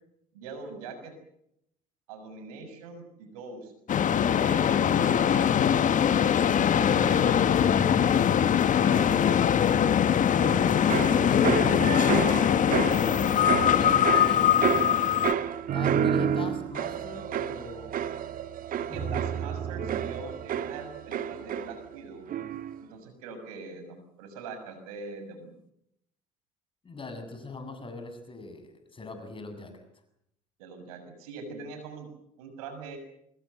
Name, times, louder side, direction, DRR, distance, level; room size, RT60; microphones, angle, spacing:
voice 1, 0.3-1.1 2.1-3.7 4.0-5.5 5.9-7.9 8.7-9.5 18.8-22.3 22.8-25.5 30.6-32.1 32.4-33.0, right 3 dB, 80° right, 7 dB, 6.6 m, -42 dB
sound 1, 3.9-15.3, left 9 dB, 45° left, 1.6 m, -22 dB
sound 2, 10.4-22.0 22.3-22.8, right 9 dB, 50° right, 1.6 m, -30 dB
voice 2, 12.7-14.4 15.7-18.0 18.9-19.2 26.8-29.8, left 3 dB, 30° left, 7 dB, 7.8 m, -41 dB
25.5 x 21.5 x 8.1 m, 0.77 s
hypercardioid pair, 65°, 18 cm